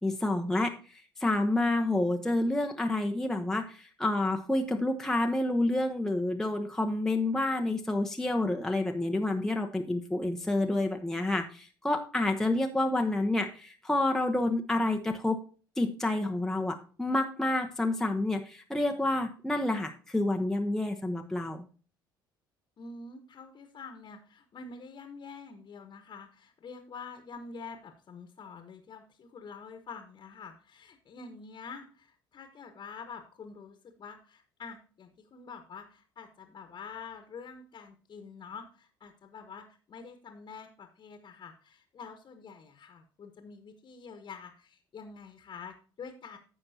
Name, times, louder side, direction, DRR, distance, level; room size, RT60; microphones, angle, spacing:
voice 1, 0.0-15.4 15.8-21.6, left 2 dB, 5° left, 3 dB, 0.9 m, -29 dB
voice 2, 22.8-46.4, left 5 dB, 40° left, 6 dB, 1.3 m, -47 dB
15.0 x 5.7 x 2.8 m, 0.38 s
figure-of-eight pair, 55°, 12 cm